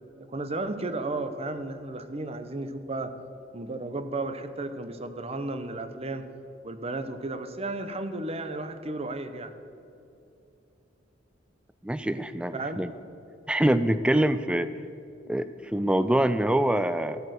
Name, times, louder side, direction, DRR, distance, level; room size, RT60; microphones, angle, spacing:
voice 1, 0.2-3.1 3.5-6.3 6.6-9.5 12.5-12.8, right 2 dB, 35° right, 9 dB, 0.9 m, -33 dB
voice 2, 11.8-12.9 13.5-14.7 15.3-17.2, right 1 dB, 5° right, 12 dB, 0.3 m, -25 dB
14.5 x 8.2 x 6.5 m, 2.8 s
head